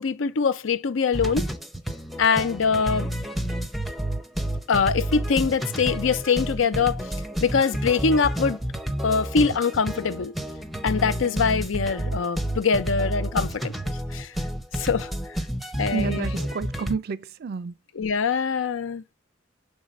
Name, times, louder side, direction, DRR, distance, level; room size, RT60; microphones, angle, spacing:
voice 1, 0.0-1.5 2.2-3.1 4.7-7.1 7.4-8.6 9.0-10.3 10.8-13.7 14.1-14.3 14.7-15.1 15.8-16.5 17.9-19.0, left 5 dB, 90° left, 0.5 m, -23 dB
sound 1, 1.1-16.9, right 1 dB, ahead, 0.6 m, -30 dB
voice 2, 15.9-17.7, right 5 dB, 55° right, 0.4 m, -30 dB
5.5 x 3.4 x 5.0 m
head